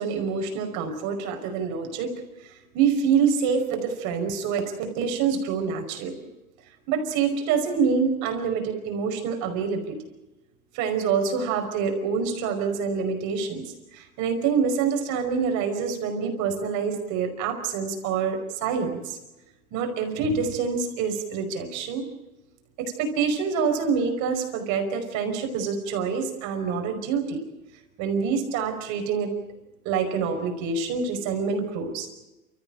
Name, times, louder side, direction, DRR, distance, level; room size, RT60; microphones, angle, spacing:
voice 1, 0.0-2.2 2.7-6.3 6.9-10.0 10.7-19.2 19.7-22.1 22.8-27.4 28.0-29.3 29.9-32.1, right 6 dB, 45° right, 5 dB, 5.3 m, -26 dB
29.5 x 14.5 x 8.9 m, 1.0 s
hypercardioid pair, 115°, 43 cm